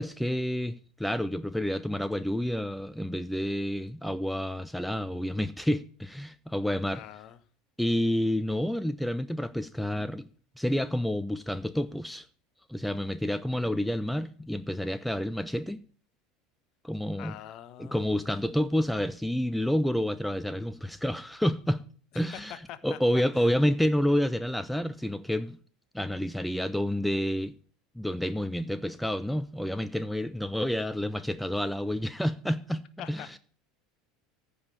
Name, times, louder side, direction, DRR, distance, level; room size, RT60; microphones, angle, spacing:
voice 1, 0.0-7.0 7.8-10.2 10.6-12.3 12.7-15.8 16.8-17.3 17.8-21.8 22.1-22.5 22.8-25.6 25.9-27.5 28.0-33.2, equal, ahead, 0.5 m, -29 dB
voice 2, 6.9-7.4 17.1-18.5 22.1-23.0 23.3-23.5 33.0-33.4, left 11 dB, 45° left, 0.9 m, -45 dB
15.0 x 5.1 x 7.0 m
figure-of-eight pair, 70°, 0 cm